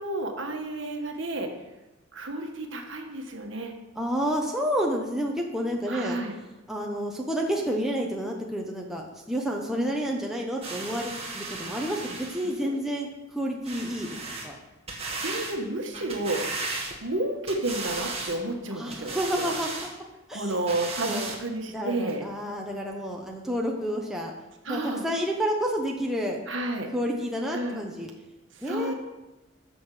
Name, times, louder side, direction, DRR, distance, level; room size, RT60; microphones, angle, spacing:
voice 1, 0.0-1.5 2.1-3.7 5.9-6.3 9.7-9.9 12.6-12.7 13.7-13.9 15.1-16.4 17.0-19.5 20.3-22.2 24.6-25.0 26.5-26.9 27.5-27.8 28.5-28.9, right 2 dB, 60° right, 3 dB, 1.5 m, -31 dB
voice 2, 4.0-6.2 6.7-14.2 14.4-14.6 18.7-19.8 20.3-20.5 21.1-21.3 21.7-24.3 24.7-26.4 26.9-28.1 28.6-28.9, equal, ahead, -1 dB, 0.9 m, -30 dB
sound 1, 10.6-12.6 13.6-14.5 14.9-15.6 15.9-17.2 17.5-18.4 18.9-19.9 20.5-21.4 22.1-22.2, right 3 dB, 30° right, 1.8 m, -35 dB
13.5 x 6.6 x 5.0 m, 1.0 s
head